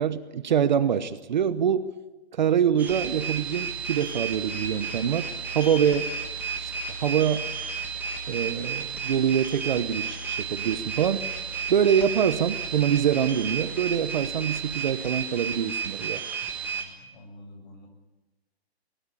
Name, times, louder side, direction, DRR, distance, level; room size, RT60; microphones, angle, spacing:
voice 1, 0.0-1.9 2.3-5.3 5.5-6.1 6.6-6.7 7.0-7.5 8.3-11.3 11.7-16.2, right 8 dB, 45° right, 13 dB, 1.0 m, -25 dB
sound 1, 2.8-16.8, right 6 dB, 5° right, 1.6 m, -33 dB
sound 2, 2.9-14.7, left 2 dB, 65° left, 3.5 m, -43 dB
voice 2, 16.4-17.9, left 1 dB, 45° left, 5 dB, 7.1 m, -48 dB
23.0 x 20.5 x 8.5 m, 1.1 s
hypercardioid pair, 170°, 32 cm